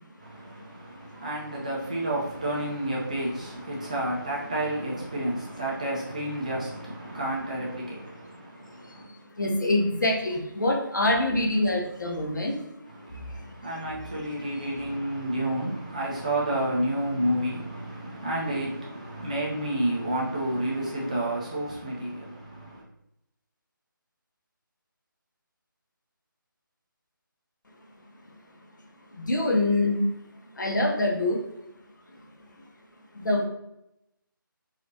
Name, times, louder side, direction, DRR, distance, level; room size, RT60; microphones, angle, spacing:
voice 1, 0.2-9.1 12.9-22.8, right 1 dB, 20° right, 0.4 m, -30 dB
voice 2, 1.1-1.5 7.0-7.1 8.8-13.7 14.0-14.2 29.1-30.1 30.5-31.4 32.1-32.3 33.1-33.4, left 1 dB, 60° left, 0.7 m, -26 dB
3.0 x 2.4 x 2.6 m
figure-of-eight pair, 155°, 12 cm